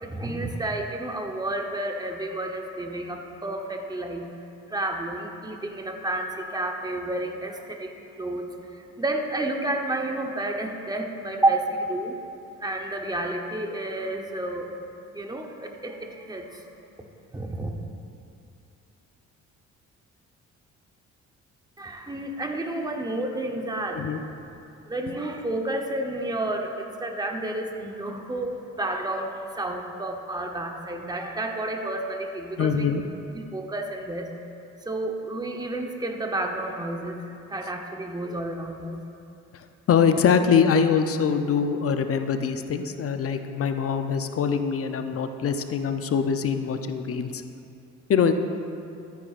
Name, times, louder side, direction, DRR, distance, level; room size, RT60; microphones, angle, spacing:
voice 1, 0.0-4.3 4.7-12.2 12.6-14.7 15.1-16.6 17.3-17.7 21.8-24.0 24.8-32.9 33.3-34.3 34.8-37.2 37.5-39.0, right 2 dB, 15° right, 2 dB, 1.0 m, -30 dB
voice 2, 32.6-33.0 39.9-47.4 48.1-48.3, left 6 dB, 50° left, 7 dB, 0.7 m, -23 dB
13.5 x 9.4 x 2.5 m, 2.6 s
cardioid pair, 90°, 30 cm